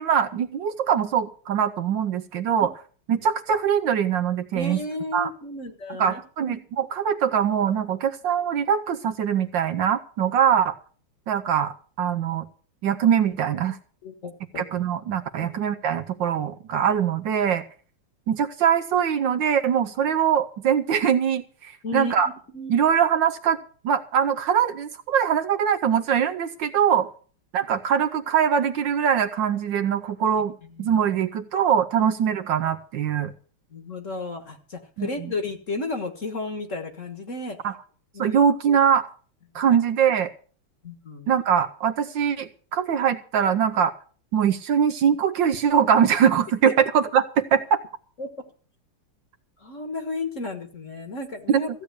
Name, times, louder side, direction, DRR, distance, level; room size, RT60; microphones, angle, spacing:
voice 1, 0.0-2.7 3.1-4.8 5.1-5.3 6.0-10.8 11.3-12.5 12.8-13.8 14.6-17.6 18.3-22.3 22.7-23.6 23.8-27.1 27.5-30.5 30.8-33.3 35.0-35.1 37.6-37.8 38.2-39.1 39.5-40.3 41.3-43.9 44.3-47.8 51.5-51.6, right 8 dB, 65° right, 9 dB, 1.4 m, -22 dB
voice 2, 4.5-6.2 6.5-6.6 14.0-14.6 21.8-22.1 22.5-22.8 30.6-31.0 33.7-37.6 38.1-38.4 39.7-39.8 40.8-41.3 46.6-46.7 48.2-48.3 49.6-51.7, left 3 dB, 40° left, 7 dB, 1.6 m, -33 dB
15.0 x 8.5 x 6.7 m, 0.41 s
omnidirectional pair, 2.4 m